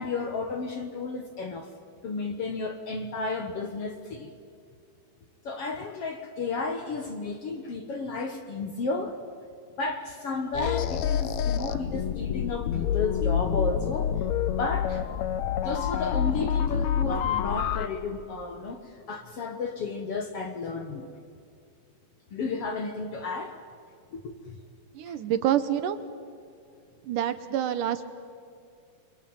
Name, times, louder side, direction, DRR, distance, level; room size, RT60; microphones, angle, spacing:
voice 1, 0.0-1.7 2.0-4.3 5.4-9.2 9.8-14.2 14.6-15.1 15.6-21.1 22.3-23.6 24.1-24.6 25.1-25.2, left 3 dB, 55° left, 6 dB, 1.8 m, -33 dB
sound 1, 10.5-17.9, left 9 dB, 70° left, 1.8 m, -27 dB
voice 2, 24.9-26.0 27.0-28.1, right 10 dB, 70° right, 11 dB, 2.4 m, -27 dB
29.0 x 23.0 x 8.9 m, 2.3 s
omnidirectional pair, 4.1 m